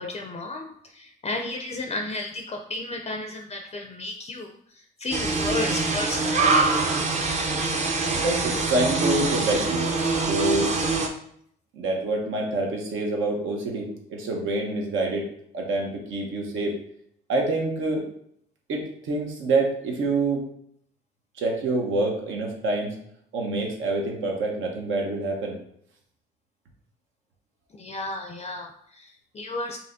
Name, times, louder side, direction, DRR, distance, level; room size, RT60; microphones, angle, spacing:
voice 1, 0.0-6.9 27.7-29.8, left 2 dB, 30° left, 4 dB, 0.4 m, -33 dB
sound 1, 5.1-11.1, right 3 dB, 35° right, 0.7 m, -24 dB
voice 2, 8.1-9.9 10.2-10.7 11.7-15.3 15.5-16.8 17.3-18.0 18.7-20.4 21.3-23.0 23.3-25.6, right 2 dB, 80° right, 1 dB, 1.1 m, -26 dB
5.5 x 3.0 x 2.6 m, 0.68 s
cardioid pair, 90°, 20 cm